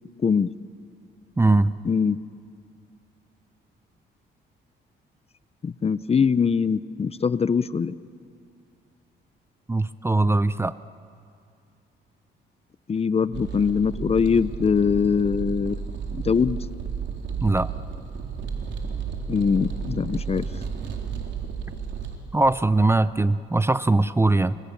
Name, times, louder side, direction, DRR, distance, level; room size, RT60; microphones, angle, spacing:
voice 1, 0.2-0.5 1.8-2.2 5.6-7.9 12.9-15.9 16.1-16.6 19.3-20.4, left 6 dB, 30° left, 16 dB, 0.6 m, -22 dB
voice 2, 1.4-1.7 9.7-10.8 17.4-17.7 22.3-24.6, right 2 dB, 10° right, 15 dB, 0.5 m, -21 dB
sound 1, 13.3-22.2, right 6 dB, 65° right, 3.9 m, -32 dB
29.5 x 26.0 x 7.2 m, 2.4 s
cardioid pair, 90°, 20 cm